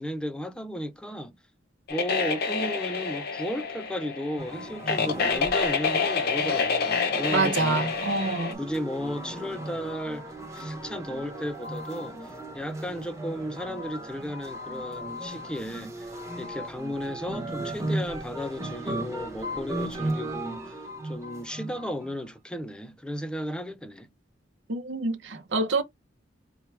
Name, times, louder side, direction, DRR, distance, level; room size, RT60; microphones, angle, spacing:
voice 1, 0.0-1.4 1.9-7.9 8.6-10.2 10.5-12.2 12.5-24.1, equal, 5° left, 0.5 m, -34 dB
sound 1, 1.9-8.5, left 5 dB, 60° left, 0.6 m, -28 dB
sound 2, 4.4-22.2, right 1 dB, 15° right, 1.0 m, -36 dB
voice 2, 7.3-8.6 24.7-25.8, right 3 dB, 85° right, 0.7 m, -26 dB
4.5 x 2.2 x 3.3 m
head